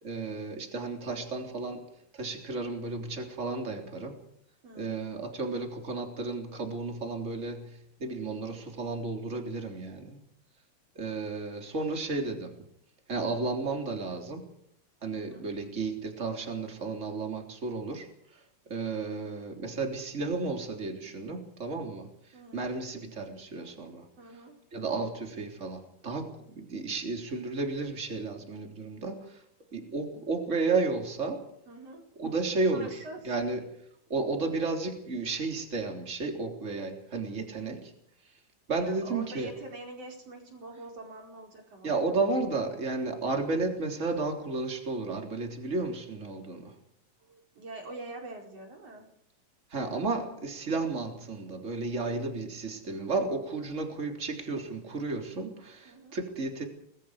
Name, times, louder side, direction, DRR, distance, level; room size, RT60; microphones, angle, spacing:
voice 1, 0.0-4.2 4.8-10.2 11.0-12.6 13.1-14.5 15.0-18.4 18.7-24.1 24.7-29.4 29.7-31.5 32.2-33.7 34.1-37.9 38.7-39.5 41.8-46.8 49.7-56.7, right 3 dB, 20° right, 3 dB, 3.4 m, -33 dB
voice 2, 4.6-4.9 15.3-15.6 22.3-22.8 24.2-24.6 31.7-32.0 32.7-33.2 38.8-42.0 47.2-49.1 55.8-56.2, right 2 dB, 40° right, 1 dB, 5.8 m, -45 dB
29.0 x 21.0 x 5.0 m, 0.68 s
omnidirectional pair, 4.2 m